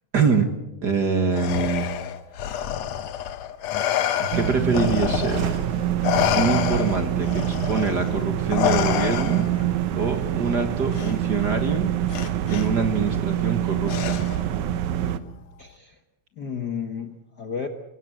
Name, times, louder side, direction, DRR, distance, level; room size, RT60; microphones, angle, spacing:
voice 1, 0.1-0.5 0.8-1.9 4.2-5.5 6.4-9.4 9.9-11.9 12.5-14.2, right 4 dB, 45° right, 6 dB, 1.7 m, -24 dB
Respiratory sounds, 1.3-5.7 6.0-9.7 10.9-11.1 12.1-12.7 13.9-14.5, left 10 dB, 65° left, 2.1 m, -27 dB
sound 1, 4.3-15.2, right 12 dB, 80° right, 2.4 m, -25 dB
voice 2, 15.6-16.0 16.4-17.7, left 6 dB, 50° left, 6 dB, 1.3 m, -32 dB
25.5 x 17.5 x 7.7 m, 0.98 s
omnidirectional pair, 3.3 m